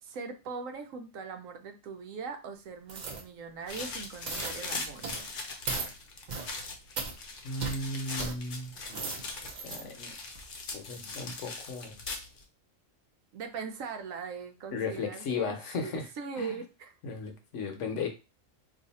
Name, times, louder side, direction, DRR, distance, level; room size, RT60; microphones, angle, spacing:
voice 1, 0.0-5.1 13.3-16.9, right 5 dB, 85° right, 6 dB, 1.0 m, -40 dB
sound 1, 2.9-3.2 3.6-3.9 4.3-4.6 5.0-5.3 5.7-5.9 6.3-6.5 7.0-7.1 7.6-7.8 8.2-8.3 8.8-9.8 10.3-10.4, right 4 dB, 50° right, 0.6 m, -37 dB
sound 2, 3.7-12.4, left 3 dB, 50° left, 0.8 m, -40 dB
voice 2, 7.4-9.2 9.6-10.1 10.7-12.0 14.7-16.1 16.4-16.5 17.0-18.1, left 4 dB, 70° left, 4 dB, 1.1 m, -36 dB
2.7 x 2.5 x 4.0 m, 0.30 s
omnidirectional pair, 1.3 m